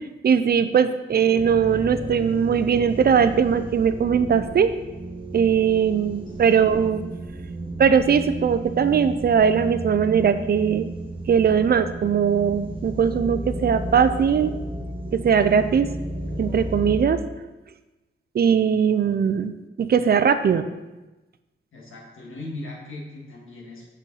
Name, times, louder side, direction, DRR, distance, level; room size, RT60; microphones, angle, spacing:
voice 1, 0.2-4.7 5.3-7.0 7.8-10.9 11.3-14.5 15.1-15.9 16.4-17.2 18.3-19.5 19.8-20.7, right 7 dB, 50° right, 11 dB, 0.4 m, -20 dB
sound 1, 1.4-17.0, right 1 dB, 25° right, 1.0 m, -33 dB
voice 2, 21.7-23.9, left 2 dB, 85° left, -2 dB, 1.7 m, -38 dB
6.3 x 5.3 x 4.0 m, 1.1 s
wide cardioid pair, 110°, 20 cm